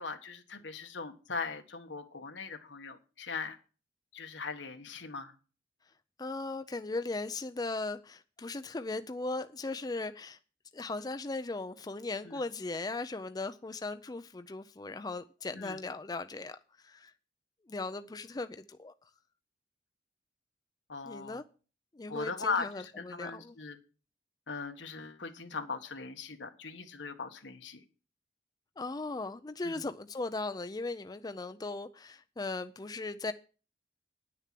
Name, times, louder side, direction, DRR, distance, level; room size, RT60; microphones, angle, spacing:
voice 1, 0.0-3.6 4.1-5.3 12.2-12.4 15.5-15.8 20.9-21.4 22.1-23.8 24.5-27.8 29.6-29.8, left 4 dB, 85° left, 1.5 m, -39 dB
voice 2, 6.2-10.4 10.7-16.6 16.8-17.1 17.7-18.9 21.1-21.4 21.9-23.5 28.8-33.3, left 3 dB, 20° left, 0.4 m, -38 dB
9.8 x 6.7 x 7.5 m
head